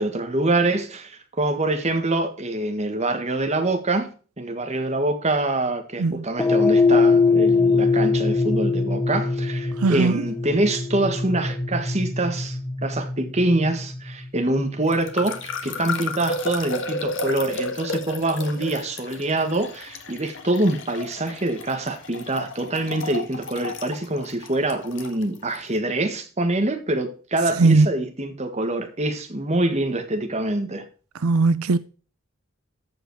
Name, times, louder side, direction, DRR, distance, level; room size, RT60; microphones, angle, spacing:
voice 1, 0.0-30.8, right 2 dB, 30° right, 1.6 m, -25 dB
sound 1, 6.4-14.8, left 4 dB, 10° left, 0.7 m, -22 dB
voice 2, 9.8-10.2 27.6-27.9 31.2-31.8, right 3 dB, 90° right, 0.6 m, -18 dB
sound 2, 14.9-25.7, left 2 dB, 60° left, 1.7 m, -33 dB
14.0 x 5.2 x 4.7 m
head